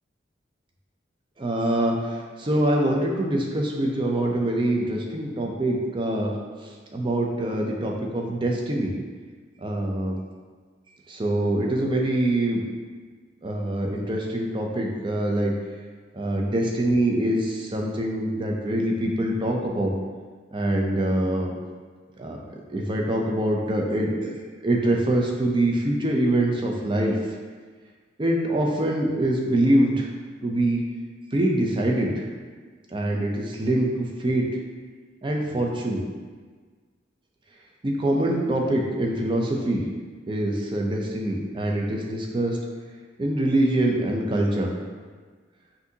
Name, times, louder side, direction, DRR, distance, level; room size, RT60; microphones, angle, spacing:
voice 1, 1.4-8.9 9.6-10.2 11.1-12.6 13.4-15.5 16.1-19.9 20.5-21.6 22.2-24.3 24.6-27.2 28.2-30.1 30.4-30.8 31.3-32.3 32.9-34.5 35.2-36.0 37.8-39.9 40.3-42.6 43.2-44.7, right 1 dB, 25° right, 0 dB, 0.5 m, -24 dB
5.9 x 2.7 x 2.7 m, 1.5 s
head